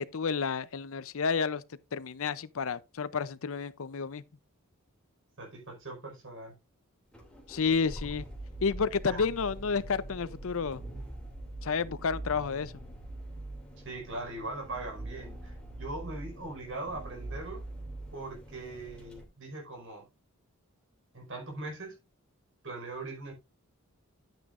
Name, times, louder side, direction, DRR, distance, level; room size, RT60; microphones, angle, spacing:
voice 1, 0.0-1.6 1.9-4.2 7.5-8.2 8.6-10.8 11.6-12.7, left 5 dB, 70° left, 0.6 m, -30 dB
voice 2, 5.4-6.6 9.0-9.3 13.8-17.6 18.1-20.1 21.1-21.9 22.6-23.3, right 2 dB, 60° right, 4.9 m, -40 dB
sound 1, 7.1-19.2, right 1 dB, 5° left, 2.7 m, -43 dB
11.0 x 9.1 x 2.5 m
head